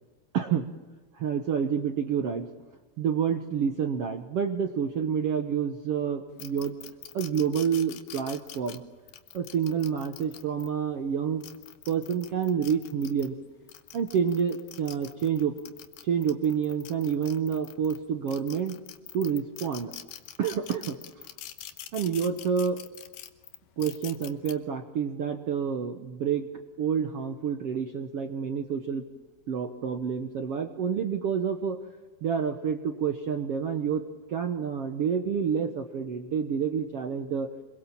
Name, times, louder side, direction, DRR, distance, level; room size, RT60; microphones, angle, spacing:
voice 1, 0.3-0.7 1.1-2.5 3.0-6.8 7.1-8.8 9.3-11.4 11.9-13.3 13.9-15.5 16.0-18.8 19.1-19.9 20.4-21.3 21.9-22.8 23.8-26.5 26.8-29.0 29.5-31.8 32.2-34.0 34.3-37.5, right 7 dB, 80° right, 5 dB, 1.3 m, -28 dB
sound 1, 6.4-10.7 11.2-13.3 13.7-18.0 18.3-24.5, left 12 dB, 85° left, 3.1 m, -44 dB
26.5 x 22.0 x 7.3 m, 1.2 s
omnidirectional pair, 4.4 m